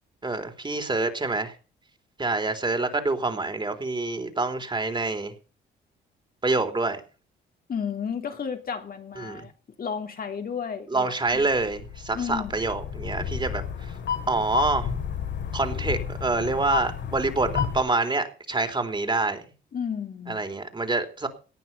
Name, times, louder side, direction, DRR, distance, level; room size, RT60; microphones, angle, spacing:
voice 1, 0.2-1.6 2.2-5.3 6.4-7.0 9.2-9.5 10.9-13.9 14.3-14.9 15.5-19.4 20.3-21.3, right 3 dB, 25° right, 3.7 m, -26 dB
voice 2, 7.7-9.5 9.8-11.5 12.1-12.5 19.7-20.4, left 7 dB, 50° left, 3.1 m, -32 dB
sound 1, 11.3-17.8, left 7 dB, 65° left, 4.8 m, -32 dB
19.0 x 11.0 x 5.6 m
cardioid pair, 75°, 20 cm